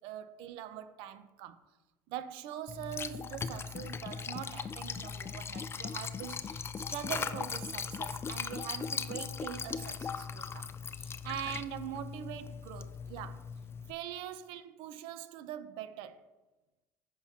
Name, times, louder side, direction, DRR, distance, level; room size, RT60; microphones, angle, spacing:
voice 1, 0.0-1.6 2.1-10.7 10.9-13.5 13.9-16.3, right 10 dB, 70° right, 0.6 m, -43 dB
Liquid, 2.7-13.9, left 6 dB, 30° left, 0.5 m, -39 dB
14.5 x 5.5 x 2.8 m
hypercardioid pair, 75°, 9 cm